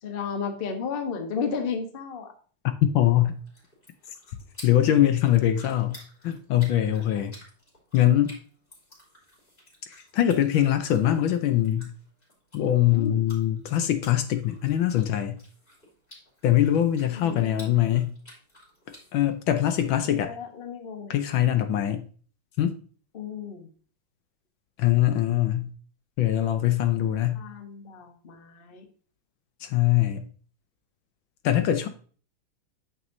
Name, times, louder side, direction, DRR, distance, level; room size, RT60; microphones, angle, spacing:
voice 1, 0.0-2.3 7.1-7.3 12.9-13.2 17.1-17.7 20.0-21.2 23.1-23.7 27.1-28.9, left 6 dB, 40° left, 0.8 m, -34 dB
voice 2, 2.8-3.4 4.6-5.9 6.2-7.3 7.9-8.3 10.1-11.9 12.5-15.4 16.4-18.1 19.1-20.4 21.1-22.0 22.6-22.8 24.8-25.7 26.2-27.4 29.6-30.2 31.4-31.9, left 12 dB, 75° left, 1.3 m, -22 dB
sound 1, 3.2-19.8, left 1 dB, 25° left, 3.1 m, -53 dB
8.9 x 6.2 x 2.6 m
omnidirectional pair, 2.3 m